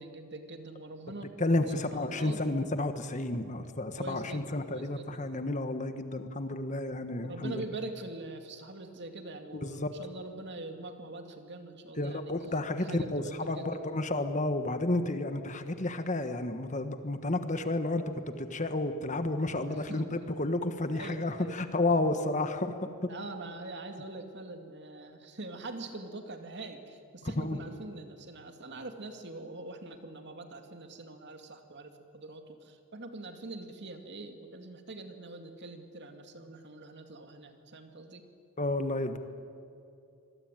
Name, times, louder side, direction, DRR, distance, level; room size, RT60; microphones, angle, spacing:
voice 1, 0.0-1.3 1.7-2.4 4.0-5.2 7.2-12.3 12.8-13.8 19.9-20.1 20.9-21.6 23.1-38.2, right 2 dB, 50° right, 6 dB, 2.3 m, -43 dB
voice 2, 1.4-7.6 9.5-9.9 12.0-18.1 18.4-23.1 27.2-27.6 38.6-39.2, left 2 dB, 35° left, 8 dB, 1.4 m, -31 dB
25.5 x 21.5 x 9.2 m, 2.5 s
head